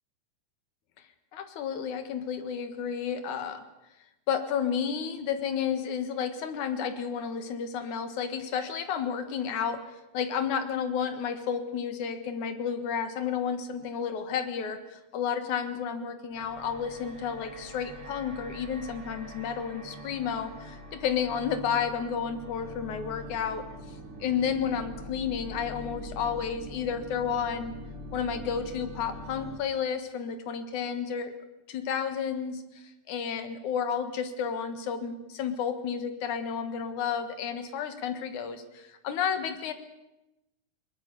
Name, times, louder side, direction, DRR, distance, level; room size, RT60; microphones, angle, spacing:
voice 1, 1.3-3.6 4.3-9.8 10.1-23.6 24.2-27.7 28.1-31.3 31.7-32.6 33.1-39.7, left 7 dB, 90° left, 8 dB, 3.0 m, -31 dB
sound 1, 16.3-29.6, left 1 dB, 35° right, 3.0 m, -43 dB
22.0 x 20.0 x 6.9 m, 0.95 s
omnidirectional pair, 3.3 m